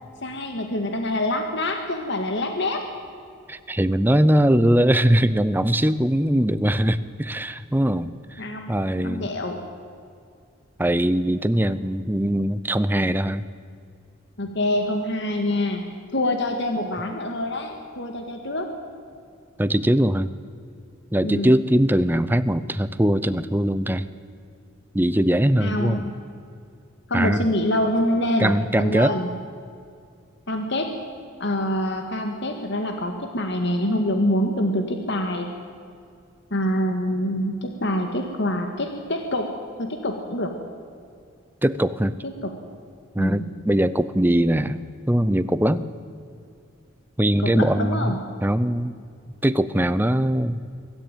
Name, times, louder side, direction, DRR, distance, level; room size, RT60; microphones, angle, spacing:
voice 1, 0.2-2.8 8.4-9.6 14.4-15.8 16.1-18.7 21.2-21.6 25.6-26.1 27.1-29.3 30.5-30.9 31.4-35.5 36.5-40.5 42.2-42.5 43.2-43.5 47.4-48.2, left 1 dB, 55° left, 5 dB, 1.8 m, -26 dB
voice 2, 3.5-8.4 8.7-9.3 10.8-13.5 19.6-20.3 21.1-24.1 24.9-26.0 27.1-27.4 28.4-29.1 41.6-42.1 43.1-45.9 47.2-48.1 48.4-48.9 49.4-50.7, right 1 dB, 10° right, 13 dB, 0.7 m, -21 dB
24.0 x 13.5 x 9.2 m, 2.4 s
head